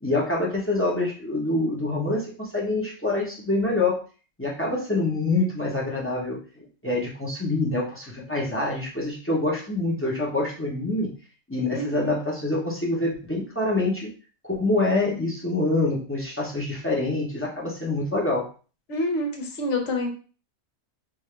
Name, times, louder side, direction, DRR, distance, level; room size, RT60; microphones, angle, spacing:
voice 1, 0.0-4.0 4.4-11.1 11.5-14.1 14.4-18.5, left 2 dB, 10° left, -3 dB, 0.7 m, -26 dB
voice 2, 11.7-12.1 18.9-20.1, left 1 dB, 60° left, 2 dB, 1.2 m, -27 dB
3.5 x 2.6 x 3.3 m, 0.37 s
omnidirectional pair, 1.5 m